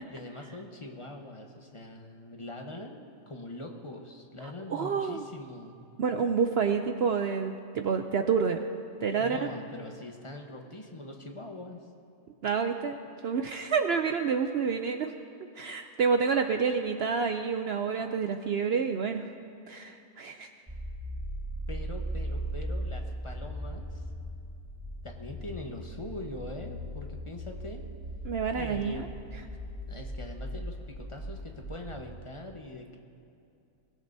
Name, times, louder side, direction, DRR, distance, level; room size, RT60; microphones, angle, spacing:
voice 1, 0.1-5.8 9.2-11.8 21.7-24.0 25.0-27.9 28.6-29.1 29.9-33.0, left 1 dB, 25° left, 2 dB, 0.9 m, -42 dB
voice 2, 4.7-5.2 6.0-8.7 9.0-9.5 12.4-13.0 13.2-15.1 15.6-19.2 19.7-20.5 28.2-29.1, right 6 dB, 70° right, 6 dB, 0.6 m, -28 dB
sound 1, 20.7-31.9, equal, 10° right, 1.6 m, -38 dB
22.0 x 15.5 x 2.7 m, 2.6 s
omnidirectional pair, 1.6 m